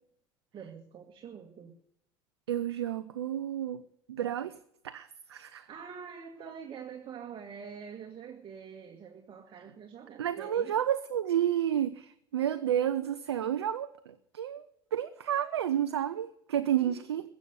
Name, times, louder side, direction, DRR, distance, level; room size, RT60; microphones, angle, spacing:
voice 1, 0.5-1.8 5.7-10.7 16.8-16.9, right 7 dB, 40° right, 1.9 m, -45 dB
voice 2, 2.5-3.8 4.1-4.5 4.8-5.7 10.2-14.7 14.9-17.2, right 10 dB, 90° right, 0.6 m, -31 dB
15.5 x 6.9 x 9.4 m
hypercardioid pair, 75°, 13 cm